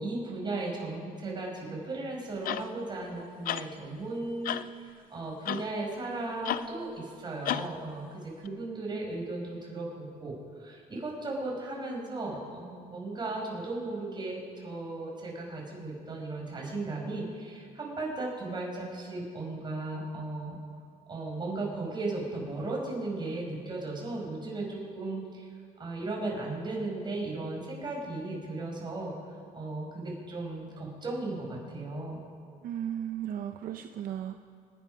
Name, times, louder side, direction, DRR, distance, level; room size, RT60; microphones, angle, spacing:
voice 1, 0.0-20.6 21.1-25.5 25.8-29.1 29.5-32.2, right 2 dB, 30° right, -2 dB, 5.1 m, -36 dB
sound 1, 2.4-2.7 3.5-3.7 4.4-4.7 5.5-5.7 6.4-6.7 7.5-7.7 8.5-8.6, left 12 dB, 65° left, 0.5 m, -32 dB
voice 2, 32.6-34.4, right 10 dB, 65° right, 6 dB, 0.6 m, -35 dB
25.5 x 10.0 x 5.5 m, 2.3 s
cardioid pair, 115°, 16 cm